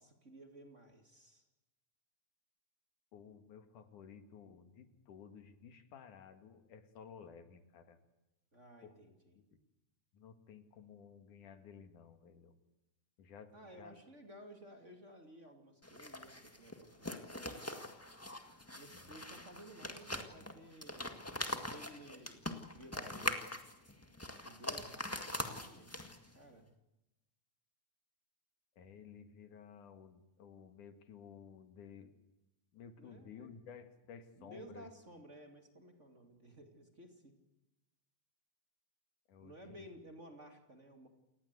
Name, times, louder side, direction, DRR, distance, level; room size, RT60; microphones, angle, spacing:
voice 1, 0.0-1.4 8.5-9.4 13.5-17.8 18.7-23.5 24.4-25.9 26.3-26.7 33.0-33.5 34.3-37.4 39.4-41.1, right 1 dB, 25° right, 4 dB, 2.6 m, -56 dB
voice 2, 3.1-8.0 8.8-8.9 9.5-9.6 10.1-12.5 13.2-14.0 18.9-19.2 28.8-32.1 32.7-34.9 39.3-39.8, left 7 dB, 85° left, 8 dB, 3.5 m, -55 dB
sound 1, 15.8-26.4, left 1 dB, 10° left, 0.8 m, -43 dB
28.5 x 19.0 x 8.2 m, 0.97 s
omnidirectional pair, 3.5 m